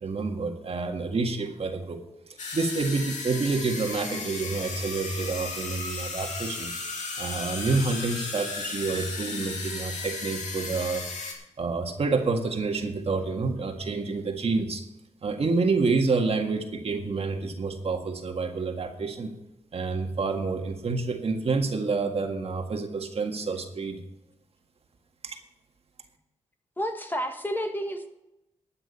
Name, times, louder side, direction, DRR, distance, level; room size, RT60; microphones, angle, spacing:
voice 1, 0.0-2.0 2.5-6.7 7.2-11.0 11.6-14.8 15.2-19.3 19.7-24.0 25.2-25.4, right 4 dB, 55° right, 4 dB, 1.8 m, -28 dB
sound 1, 2.4-11.3, left 4 dB, 80° left, 2.5 m, -35 dB
voice 2, 26.8-28.1, equal, 15° left, 5 dB, 1.7 m, -30 dB
13.0 x 8.9 x 5.4 m, 0.88 s
cardioid pair, 80°, 12 cm